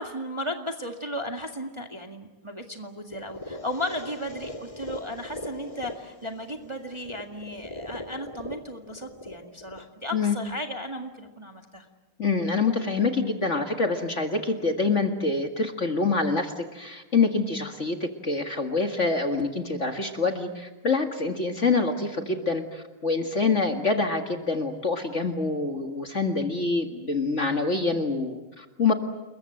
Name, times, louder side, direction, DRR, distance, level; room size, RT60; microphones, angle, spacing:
voice 1, 0.0-11.9, left 1 dB, 15° right, 4 dB, 1.8 m, -35 dB
sound 1, 3.1-11.1, left 1 dB, 15° left, 1.8 m, -41 dB
voice 2, 12.2-28.9, left 3 dB, 35° left, 5 dB, 2.0 m, -26 dB
29.5 x 22.0 x 7.7 m, 1.1 s
omnidirectional pair, 2.3 m